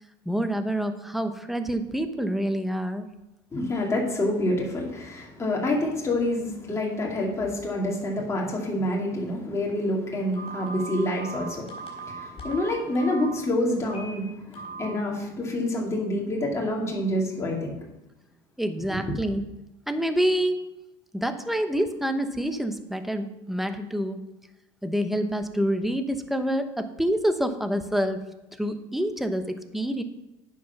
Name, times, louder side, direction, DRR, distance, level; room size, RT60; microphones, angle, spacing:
voice 1, 0.2-3.1 18.6-19.4 19.9-20.6 21.1-24.2 24.8-28.2 28.6-30.0, equal, ahead, 8 dB, 0.9 m, -27 dB
voice 2, 3.5-17.8 18.9-19.0, left 1 dB, 20° left, -2 dB, 2.5 m, -27 dB
Telephone, 10.3-13.3 13.8-14.1 14.5-14.9, right 3 dB, 45° left, 4.0 m, -38 dB
9.4 x 5.6 x 6.0 m, 0.95 s
supercardioid pair, 105°, 13 cm